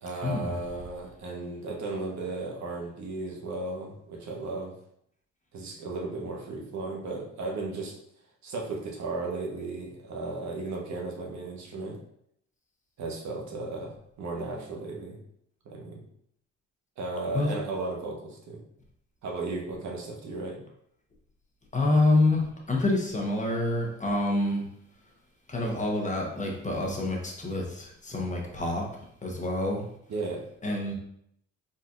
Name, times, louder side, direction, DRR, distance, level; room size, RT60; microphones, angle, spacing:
voice 1, 0.0-4.7 5.5-7.9 8.4-12.0 13.0-15.2 15.6-16.0 17.0-18.6 19.2-20.7 30.1-30.4, right 3 dB, 65° right, 0 dB, 1.3 m, -35 dB
voice 2, 21.7-24.6 25.5-28.8 29.2-29.8 30.6-30.9, left 2 dB, 25° left, -1 dB, 1.1 m, -27 dB
4.3 x 4.0 x 2.5 m, 0.72 s
cardioid pair, 90°, 30 cm